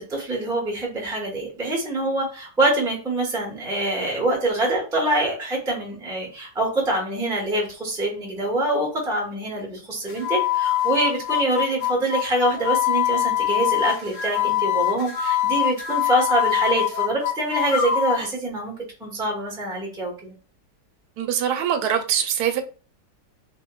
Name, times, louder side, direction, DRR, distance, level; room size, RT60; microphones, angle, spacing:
voice 1, 0.0-18.7 19.0-20.3, right 2 dB, 5° right, 0.4 m, -25 dB
sound 1, 10.1-18.3, left 12 dB, 80° left, 1.6 m, -24 dB
voice 2, 21.2-22.6, right 9 dB, 75° right, 1.0 m, -23 dB
2.8 x 2.7 x 2.2 m
omnidirectional pair, 1.9 m